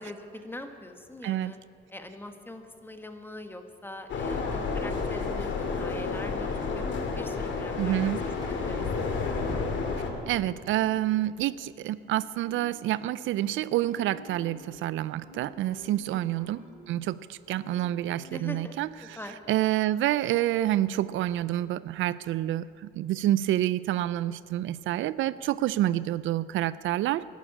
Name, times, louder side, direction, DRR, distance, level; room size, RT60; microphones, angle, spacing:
voice 1, 0.0-1.6 1.9-6.8 7.2-8.2 8.4-8.8 16.1-16.4 18.3-18.7 19.2-19.4, left 1 dB, 10° left, 6 dB, 1.4 m, -43 dB
voice 2, 1.2-1.5 7.8-8.2 10.3-27.3, right 14 dB, 80° right, 18 dB, 0.4 m, -28 dB
sound 1, 4.1-10.1, left 4 dB, 70° left, 2.0 m, -30 dB
sound 2, 8.4-10.5 13.4-16.6 18.5-18.6 18.8-18.9, equal, 20° right, 4.4 m, -48 dB
Marimba xylophone, 10.1-11.0 11.5-17.0 17.5-18.4 18.9-19.2, equal, 50° right, 4.3 m, -51 dB
12.0 x 11.5 x 8.5 m, 2.4 s
cardioid pair, 90°, 20 cm